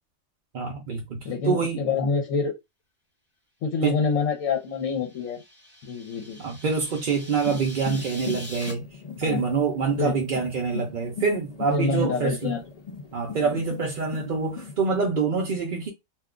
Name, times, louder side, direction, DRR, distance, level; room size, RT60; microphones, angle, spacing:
voice 1, 0.5-1.8 3.8-4.0 6.4-8.8 9.2-12.5 13.1-15.9, right 5 dB, 50° right, 0.6 m, -26 dB
voice 2, 1.2-2.5 3.6-5.4 5.8-6.4 9.2-9.5 10.0-10.2 11.7-12.6 13.4-13.6, left 4 dB, 75° left, 1.1 m, -26 dB
sound 1, 4.6-8.7, left 1 dB, 25° left, 1.0 m, -44 dB
sound 2, 7.3-15.0, left 6 dB, 50° left, 0.5 m, -40 dB
2.6 x 2.2 x 3.6 m
omnidirectional pair, 1.4 m